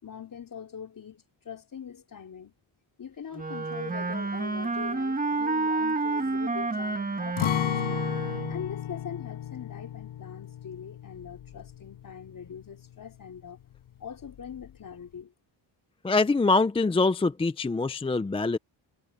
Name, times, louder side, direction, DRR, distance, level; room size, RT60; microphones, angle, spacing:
voice 1, 0.0-2.5 3.0-8.0 8.5-13.6 14.0-15.3, left 7 dB, 45° left, 4.6 m, -42 dB
Wind instrument woodwind instrument, 3.4-8.7, right 3 dB, 20° right, 1.6 m, -30 dB
Acoustic guitar, 7.4-13.3 13.6-13.8 14.2-14.7, left 11 dB, 80° left, 6.9 m, -34 dB
voice 2, 16.0-18.6, left 3 dB, 15° left, 0.4 m, -24 dB
cardioid pair, 135°, 47 cm